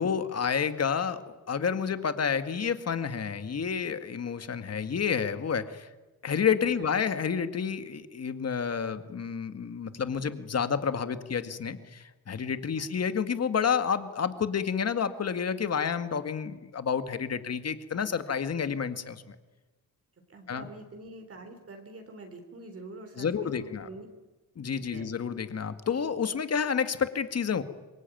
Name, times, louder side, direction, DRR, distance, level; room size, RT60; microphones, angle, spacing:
voice 1, 0.0-5.9 6.2-19.4 20.5-20.7 23.2-23.9 24.6-27.6, left 6 dB, 45° left, 10 dB, 2.0 m, -30 dB
voice 2, 20.3-24.1 24.9-25.1, right 2 dB, 40° right, 5 dB, 3.9 m, -45 dB
27.0 x 23.0 x 9.3 m, 1.2 s
cardioid pair, 120°, 35 cm